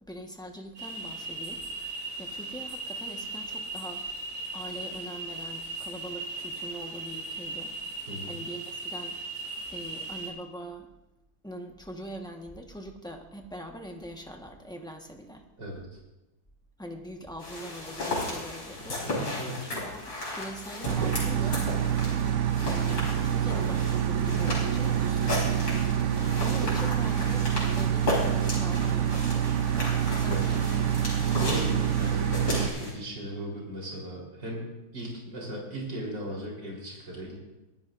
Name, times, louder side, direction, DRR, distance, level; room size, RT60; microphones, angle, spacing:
voice 1, 0.1-1.6 2.2-4.0 4.5-7.7 8.2-9.2 9.7-10.9 11.4-15.4 16.8-19.1 19.6-21.7 22.7-25.6 26.4-27.4 27.7-29.6 30.1-30.6, equal, 5° left, 2 dB, 0.9 m, -42 dB
sound 1, 0.8-10.3, right 3 dB, 40° right, 3.3 m, -37 dB
voice 2, 8.1-8.4 15.6-16.0 19.1-19.6 30.3-30.5 31.4-34.7 34.9-37.4, right 1 dB, 65° right, -3 dB, 4.6 m, -37 dB
sound 2, 17.4-32.9, left 2 dB, 70° left, 5.9 m, -35 dB
sound 3, 20.9-32.7, right 9 dB, 80° right, 0.6 m, -27 dB
23.0 x 14.0 x 2.6 m, 0.96 s
omnidirectional pair, 2.1 m